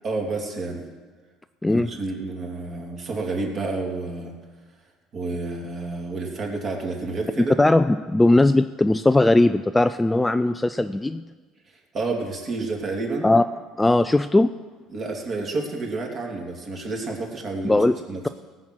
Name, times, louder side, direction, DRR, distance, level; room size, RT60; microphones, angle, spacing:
voice 1, 0.0-0.9 1.7-4.3 5.1-7.6 11.7-13.3 14.9-18.2, right 3 dB, 35° right, 0 dB, 2.7 m, -30 dB
voice 2, 7.6-11.2 13.2-13.4 13.8-14.5 17.6-18.0, left 2 dB, 10° left, 11 dB, 0.3 m, -19 dB
18.0 x 6.2 x 7.8 m, 1.4 s
cardioid pair, 125°, 0 cm